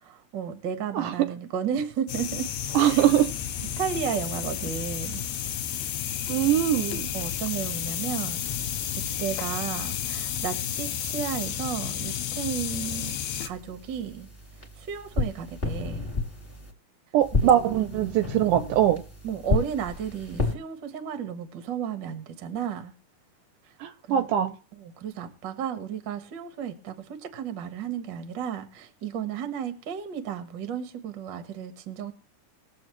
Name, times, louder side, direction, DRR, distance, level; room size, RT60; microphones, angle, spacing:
voice 1, 0.0-2.5 2.8-3.1 3.8-5.3 7.1-8.5 9.2-14.3 14.8-16.1 17.4-17.5 18.4-18.7 19.2-22.9 24.0-24.3 24.8-32.1, right 8 dB, 55° right, 1.3 m, -33 dB
voice 2, 0.9-1.3 2.7-3.3 6.3-7.1 17.1-19.0 23.8-24.6, right 11 dB, 75° right, 2.0 m, -22 dB
sound 1, 2.1-13.5, left 10 dB, 75° left, 1.8 m, -32 dB
sound 2, 2.1-4.0 4.5-7.9 8.4-10.5 11.0-16.7 17.2-20.6, left 3 dB, 20° left, 2.1 m, -35 dB
21.0 x 7.6 x 3.1 m
omnidirectional pair, 4.0 m